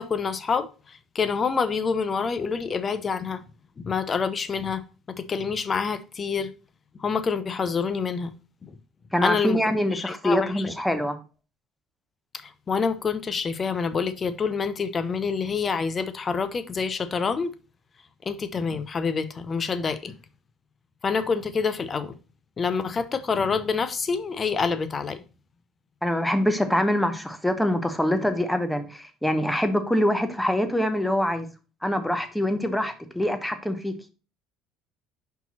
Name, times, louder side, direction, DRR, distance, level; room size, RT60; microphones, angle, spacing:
voice 1, 0.0-3.4 3.8-4.8 5.1-6.5 7.0-8.3 8.6-8.7 9.2-9.6 9.9-10.7 12.3-17.5 18.3-20.1 21.0-22.1 22.6-25.2, left 5 dB, 35° left, 0.8 m, -27 dB
voice 2, 9.1-11.2 26.0-31.5 31.8-33.9, equal, 5° left, 1.0 m, -24 dB
5.3 x 4.7 x 4.2 m
supercardioid pair, 85°, 0 cm